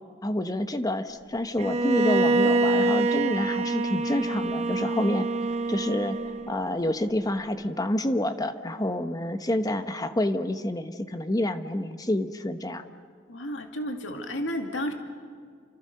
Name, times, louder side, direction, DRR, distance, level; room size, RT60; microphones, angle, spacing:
voice 1, 0.2-5.3 5.7-6.2 6.5-12.8, left 1 dB, 20° left, 9 dB, 1.0 m, -28 dB
Bowed string instrument, 1.6-6.6, right 3 dB, 35° right, 1.1 m, -25 dB
voice 2, 13.3-14.9, equal, 70° left, 4 dB, 2.4 m, -32 dB
29.5 x 26.5 x 6.6 m, 2.1 s
head